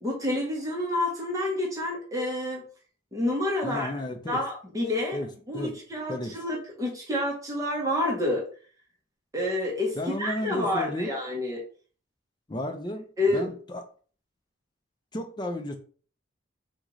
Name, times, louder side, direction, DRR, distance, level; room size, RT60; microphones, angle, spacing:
voice 1, 0.0-2.6 3.1-4.0 4.3-5.2 5.5-8.5 9.3-11.6 13.2-13.5, left 1 dB, 15° right, 0.9 m, -28 dB
voice 2, 3.6-4.4 5.1-5.3 5.5-5.8 6.1-6.4 10.0-11.1 12.5-13.8 15.1-15.8, left 1 dB, 20° left, 0.5 m, -33 dB
3.7 x 2.4 x 3.1 m
head